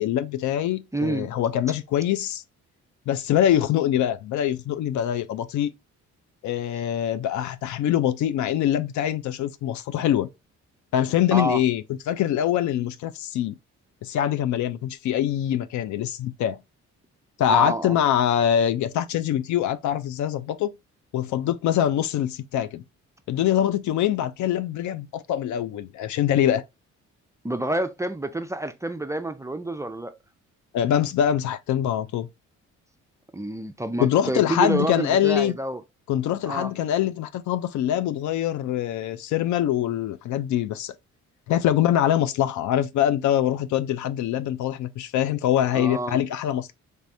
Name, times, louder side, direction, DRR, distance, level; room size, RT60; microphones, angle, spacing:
voice 1, 0.0-2.4 3.1-5.7 6.4-10.3 10.9-13.6 14.0-16.6 17.4-20.7 21.1-22.8 23.3-26.6 30.7-32.3 34.0-35.5 36.1-40.9 41.5-46.7, left 11 dB, 75° left, 0.5 m, -24 dB
voice 2, 0.9-1.3 11.3-11.6 17.5-18.0 27.4-30.1 33.3-35.8 36.5-36.7 45.7-46.2, right 2 dB, 10° right, 0.4 m, -28 dB
3.3 x 3.3 x 2.6 m
cardioid pair, 90°, 30 cm